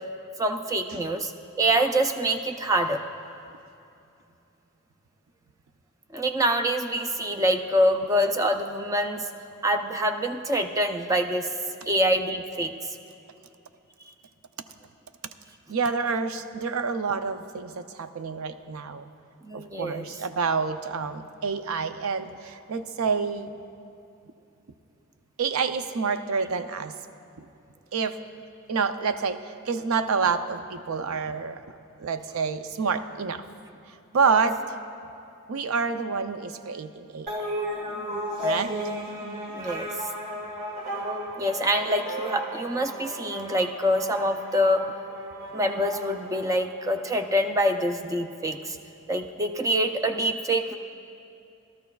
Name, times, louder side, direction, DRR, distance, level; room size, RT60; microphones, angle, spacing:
voice 1, 0.4-1.3 1.6-3.0 6.1-9.3 9.6-11.5 11.9-13.0 19.4-20.1 39.5-39.9 41.4-44.8 45.5-48.8 49.1-50.8, equal, 15° right, 6 dB, 0.4 m, -25 dB
voice 2, 15.7-19.1 19.5-23.5 25.4-26.9 27.4-27.5 27.9-28.2 28.7-31.6 32.0-33.4 33.9-34.6 35.5-37.3 38.4-38.7, right 5 dB, 75° right, 10 dB, 0.5 m, -28 dB
sound 1, 37.3-47.1, equal, 40° right, 1.8 m, -34 dB
18.0 x 13.0 x 2.3 m, 2.7 s
head